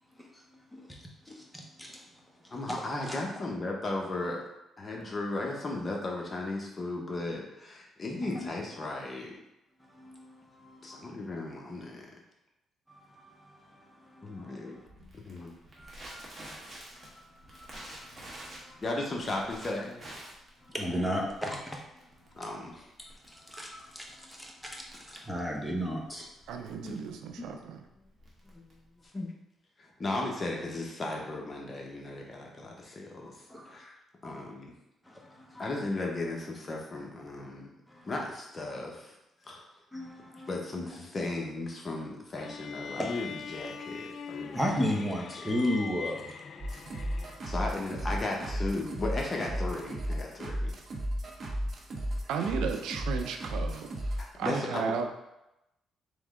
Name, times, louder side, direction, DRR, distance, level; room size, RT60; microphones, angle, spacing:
voice 1, 1.2-2.0 3.1-3.2 8.3-8.4 9.9-11.0 12.9-14.5 15.8-16.2 17.0-18.8 20.6-21.8 23.3-26.3 33.5-33.8 34.2-34.4 35.1-35.7 37.9-38.1 39.9-40.5 43.0-43.1 44.5-46.3, equal, ahead, -1 dB, 0.9 m, -35 dB
voice 2, 2.5-4.4 4.8-9.4 10.8-12.1 14.2-14.7 15.1-15.5 18.8-20.0 22.4-22.9 26.8-27.0 27.3-27.5 28.4-28.8 29.1-29.3 29.8-33.9 34.2-34.8 35.6-37.8 38.0-39.2 39.4-39.8 40.5-44.8 45.4-45.6 47.4-50.7 54.2-54.9, left 2 dB, 35° left, 0 dB, 1.0 m, -36 dB
Crackle, 14.8-29.0, right 1 dB, 30° right, 1.3 m, -50 dB
voice 3, 26.5-27.8 52.3-55.1, right 6 dB, 85° right, 5 dB, 0.4 m, -34 dB
sound 1, 42.4-47.6, left 5 dB, 55° left, 0.3 m, -42 dB
sound 2, 46.6-54.3, equal, 45° right, 0.7 m, -34 dB
3.6 x 3.1 x 3.7 m, 0.89 s
cardioid pair, 90°, 0 cm